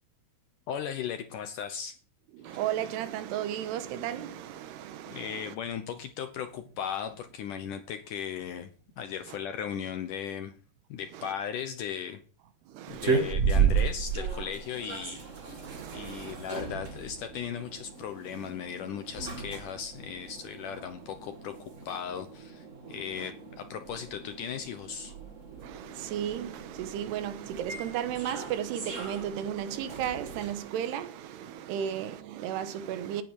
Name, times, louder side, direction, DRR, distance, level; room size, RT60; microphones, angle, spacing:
voice 1, 0.7-2.0 2.4-2.6 5.1-8.7 9.0-10.5 10.9-12.2 12.9-15.3 15.9-25.1, left 8 dB, 70° left, 2.0 m, -37 dB
voice 2, 2.3-5.5 9.3-9.4 11.1-11.3 12.7-13.3 14.4-14.5 15.4-16.5 20.8-20.9 22.8-23.3 25.5-33.2, right 10 dB, 85° right, 3.2 m, -35 dB
sound 1, 12.9-30.5, right 6 dB, 40° right, 1.1 m, -34 dB
18.0 x 9.9 x 4.8 m
omnidirectional pair, 4.7 m